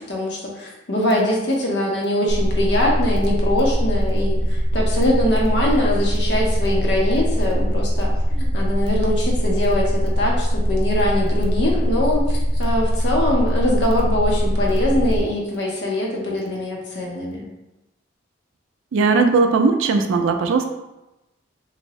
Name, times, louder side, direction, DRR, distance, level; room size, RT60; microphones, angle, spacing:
voice 1, 0.1-17.4, left 1 dB, 60° left, -2 dB, 0.7 m, -23 dB
sound 1, 2.3-15.2, equal, 15° left, 0.9 m, -21 dB
voice 2, 18.9-20.6, right 4 dB, 85° right, 6 dB, 0.3 m, -18 dB
2.6 x 2.6 x 3.0 m, 0.97 s
head